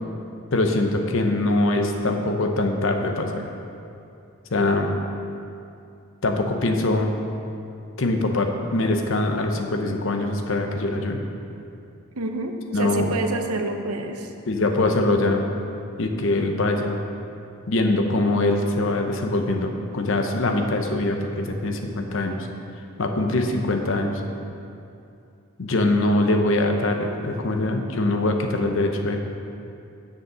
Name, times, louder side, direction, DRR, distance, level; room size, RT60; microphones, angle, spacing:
voice 1, 0.5-3.5 4.5-4.9 6.2-7.2 8.0-11.2 12.7-13.1 14.5-15.4 16.0-17.0 17.7-22.5 23.0-24.2 25.6-29.2, left 2 dB, 60° left, 4 dB, 0.7 m, -23 dB
voice 2, 12.2-14.3, right 2 dB, 90° right, 5 dB, 0.7 m, -28 dB
7.2 x 6.6 x 5.5 m, 2.6 s
head